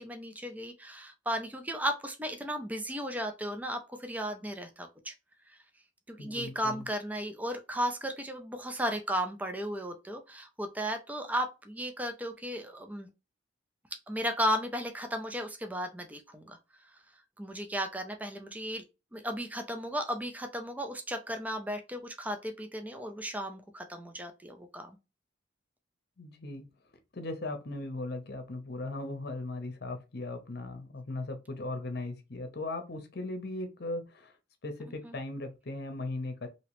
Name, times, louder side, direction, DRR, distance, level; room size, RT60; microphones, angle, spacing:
voice 1, 0.0-5.1 6.1-13.1 14.1-16.6 17.4-18.8 19.1-25.0 35.0-35.2, equal, 10° right, 0.5 m, -35 dB
voice 2, 6.2-6.8 26.2-26.6 27.1-34.3 34.6-36.5, left 2 dB, 60° left, 0.8 m, -38 dB
3.0 x 2.9 x 3.0 m
head